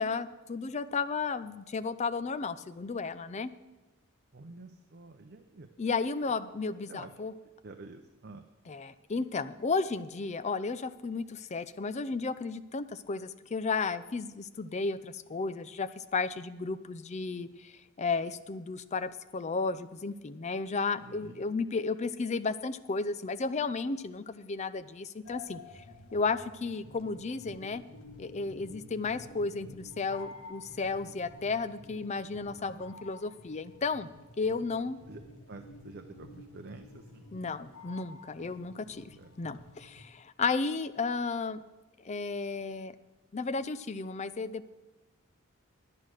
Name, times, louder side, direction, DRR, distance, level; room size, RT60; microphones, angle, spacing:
voice 1, 0.0-3.5 5.8-7.3 8.7-25.8 26.1-27.8 28.2-34.1 34.4-35.0 37.3-41.6 42.0-43.0 43.3-44.7, left 4 dB, 30° left, 13 dB, 0.4 m, -33 dB
voice 2, 4.3-5.7 6.9-7.1 7.6-8.4 21.0-21.5 32.6-33.1 35.1-35.2 35.5-37.2 39.2-39.4, right 3 dB, 50° right, 6 dB, 0.7 m, -49 dB
sound 1, 25.2-40.0, left 2 dB, 75° left, 1.2 m, -51 dB
10.5 x 9.4 x 6.4 m, 1.1 s
head